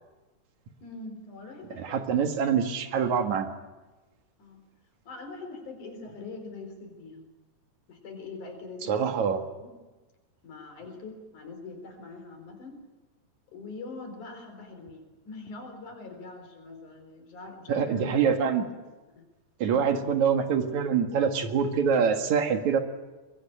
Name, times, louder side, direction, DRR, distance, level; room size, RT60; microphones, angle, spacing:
voice 1, 0.8-2.2 4.4-4.7 5.1-7.2 7.9-9.1 9.6-9.7 10.4-12.8 13.5-18.3 19.1-19.2 19.7-19.9, left 3 dB, 85° left, 5 dB, 5.6 m, -43 dB
voice 2, 1.8-3.5 8.9-9.4 17.7-18.6 19.6-22.8, right 7 dB, 70° right, 6 dB, 3.1 m, -25 dB
22.5 x 22.5 x 8.9 m, 1.2 s
omnidirectional pair, 3.4 m